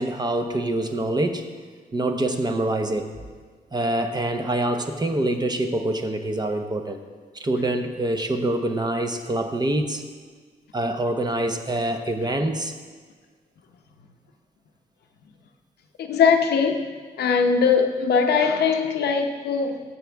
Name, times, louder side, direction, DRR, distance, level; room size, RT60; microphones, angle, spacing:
voice 1, 0.0-1.5 1.9-3.1 3.7-7.0 7.3-10.0 10.7-12.8, right 1 dB, 25° right, 0.9 m, -25 dB
voice 2, 16.0-16.9 17.2-19.8, left 6 dB, 85° left, 0.8 m, -21 dB
14.0 x 7.0 x 3.5 m
cardioid pair, 85°, 16 cm